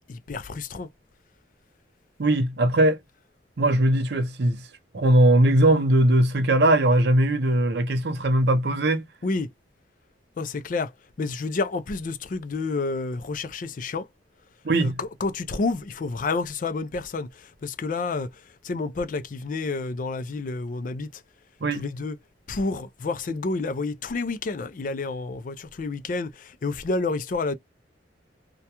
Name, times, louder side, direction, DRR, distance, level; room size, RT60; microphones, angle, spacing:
voice 1, 0.1-0.9 9.2-9.5 10.4-10.9 11.2-14.1 14.8-17.3 17.6-18.3 18.6-21.1 21.7-22.2 22.5-27.6, left 3 dB, 45° left, 0.4 m, -29 dB
voice 2, 2.2-3.0 3.6-4.6 4.9-9.0 14.6-15.0 21.6-21.9, right 1 dB, 60° right, 0.6 m, -20 dB
2.3 x 2.2 x 2.8 m
head